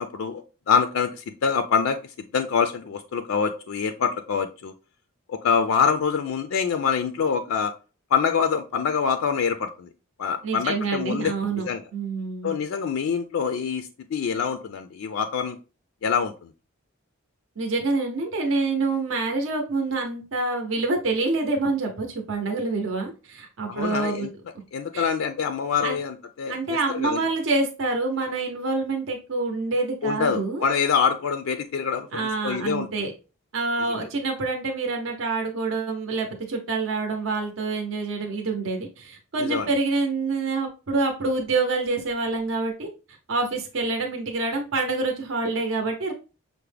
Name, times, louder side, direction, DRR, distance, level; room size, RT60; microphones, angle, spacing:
voice 1, 0.0-2.0 2.3-4.7 5.3-7.7 8.1-9.9 10.2-11.8 12.4-15.6 16.0-16.5 23.7-24.3 24.7-27.2 30.0-32.9 33.9-34.1 39.4-39.7, left 6 dB, 70° left, 8 dB, 0.4 m, -25 dB
voice 2, 10.4-11.7 11.9-12.5 17.6-24.3 24.9-25.1 25.8-26.0 26.5-30.6 32.1-33.1 33.5-42.9 43.3-46.1, right 3 dB, 65° right, 2 dB, 0.7 m, -26 dB
5.8 x 2.1 x 3.2 m, 0.33 s
head